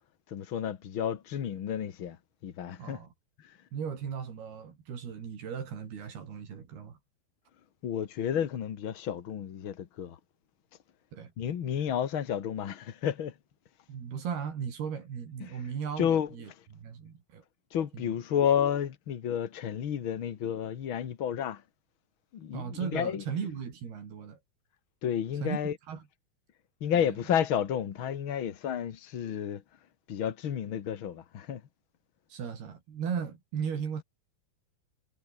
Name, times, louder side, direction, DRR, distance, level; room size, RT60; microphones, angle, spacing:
voice 1, 0.3-2.2 2.4-3.0 3.4-3.5 7.8-10.2 11.4-13.3 15.4-15.6 16.0-16.3 17.7-21.6 22.3-23.2 25.0-25.7 26.8-29.6 30.1-31.6, left 9 dB, 60° left, 1.4 m, -31 dB
voice 2, 2.8-3.1 3.7-7.0 11.1-11.3 13.9-17.4 17.9-18.2 22.5-24.4 25.4-25.6 25.9-26.0 26.9-27.2 32.3-34.0, right 7 dB, 80° right, 5.8 m, -37 dB
omnidirectional pair, 4.5 m